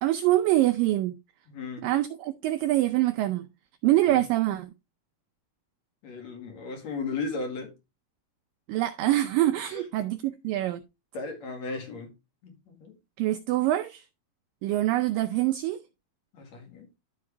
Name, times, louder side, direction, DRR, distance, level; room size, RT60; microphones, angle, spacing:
voice 1, 0.0-1.2 1.8-3.5 3.8-4.7 8.7-10.8 13.2-14.0 14.6-15.8, right 15 dB, 80° right, 2.0 m, -25 dB
voice 2, 1.5-1.9 4.1-4.2 6.0-7.7 9.7-9.8 11.1-12.1 12.4-13.0 16.3-16.9, left 4 dB, 50° left, 3.0 m, -35 dB
12.5 x 4.8 x 3.2 m
omnidirectional pair, 4.4 m